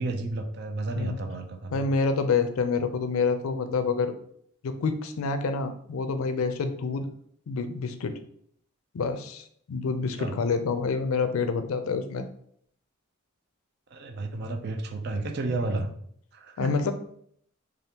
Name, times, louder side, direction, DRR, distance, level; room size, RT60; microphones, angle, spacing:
voice 1, 0.0-1.9 10.2-10.3 13.9-15.9 16.3-16.7, right 2 dB, 50° right, 5 dB, 0.4 m, -32 dB
voice 2, 1.7-4.1 4.6-7.1 7.5-8.1 8.9-12.3 16.6-16.9, left 4 dB, 85° left, 8 dB, 0.4 m, -27 dB
3.4 x 2.4 x 2.8 m, 0.65 s
head